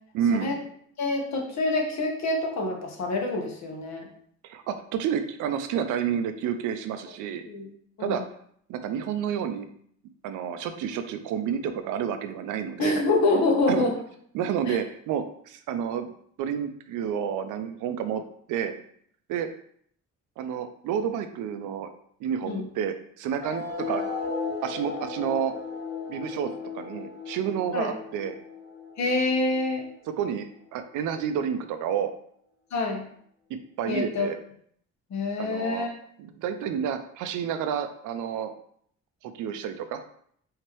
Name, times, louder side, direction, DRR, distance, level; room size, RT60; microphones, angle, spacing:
voice 1, 0.1-0.6 4.4-7.4 8.0-8.2 8.7-9.7 10.2-13.0 13.7-13.9 14.3-18.2 18.5-18.8 19.3-19.5 20.4-21.9 22.2-24.0 24.6-25.5 26.1-26.5 26.7-28.3 30.2-32.1 33.8-34.4 35.4-35.9 36.2-38.5 39.2-40.0, right 8 dB, 90° right, 9 dB, 0.5 m, -30 dB
voice 2, 1.0-4.0 7.5-7.7 8.0-8.2 12.8-13.9 14.7-14.8 22.5-22.7 27.7-27.9 29.0-29.9 32.7-33.1 33.9-34.3 35.1-35.9, left 2 dB, 65° left, 1 dB, 1.2 m, -26 dB
sound 1, 23.4-30.4, left 4 dB, 35° left, 0.8 m, -36 dB
4.4 x 2.8 x 3.0 m, 0.64 s
cardioid pair, 90°, 30 cm